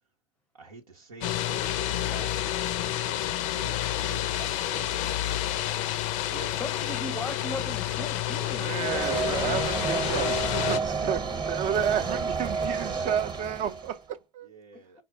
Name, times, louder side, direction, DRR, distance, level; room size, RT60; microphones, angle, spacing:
voice 1, 0.5-6.6 8.9-10.2 10.5-13.2 14.4-15.0, right 4 dB, 90° right, 0.7 m, -47 dB
sound 1, 1.2-10.8, left 12 dB, 60° left, 0.5 m, -29 dB
voice 2, 6.3-9.6, left 1 dB, 5° left, 0.5 m, -38 dB
voice 3, 8.5-11.2 11.5-14.5, right 9 dB, 40° right, 0.4 m, -32 dB
sound 2, 8.8-14.0, right 4 dB, 25° right, 0.8 m, -30 dB
4.4 x 2.1 x 3.8 m
hypercardioid pair, 75°, 18 cm